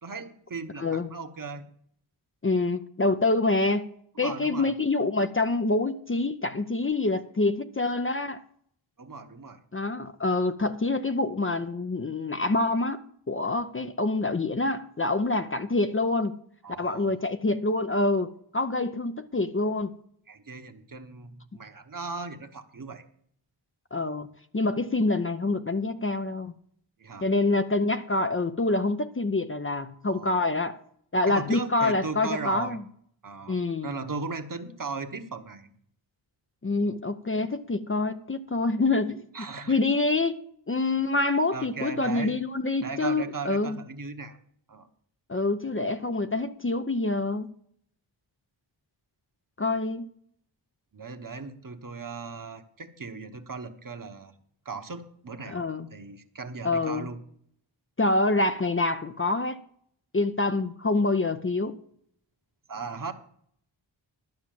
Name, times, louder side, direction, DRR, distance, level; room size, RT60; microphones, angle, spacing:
voice 1, 0.0-1.7 4.2-4.7 9.0-9.6 16.6-17.2 20.3-23.0 27.0-27.3 30.0-30.5 31.3-32.8 33.2-33.6 33.8-35.7 39.3-39.8 41.5-42.4 42.8-44.4 44.7-44.9 50.9-54.3 54.6-57.2 62.7-63.1, right 4 dB, 45° right, 1.1 m, -37 dB
voice 2, 2.4-3.9 4.2-8.4 9.7-13.0 13.3-16.4 16.8-19.9 23.9-24.3 24.5-26.5 27.2-30.8 31.1-32.8 33.5-33.9 36.6-39.3 39.7-40.4 40.7-43.8 45.3-47.5 49.6-50.1 55.5-55.9 56.6-57.1 58.0-59.6 60.1-61.8, left 2 dB, 25° left, 0.6 m, -26 dB
12.0 x 5.9 x 7.5 m
wide cardioid pair, 75°, 47 cm